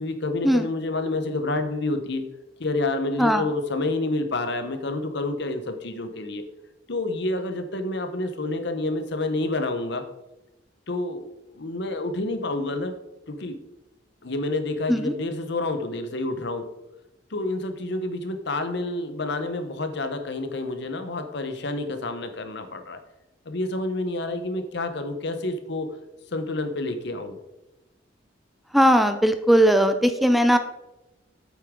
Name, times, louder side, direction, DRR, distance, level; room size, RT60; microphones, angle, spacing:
voice 1, 0.0-2.2 2.6-6.4 6.9-10.1 10.9-11.2 11.5-12.9 13.3-13.6 14.2-16.7 17.3-23.0 23.4-25.9 26.3-27.4, left 2 dB, 65° left, 8 dB, 1.0 m, -28 dB
voice 2, 28.7-30.6, equal, ahead, 8 dB, 0.4 m, -18 dB
8.4 x 8.2 x 3.7 m, 0.97 s
head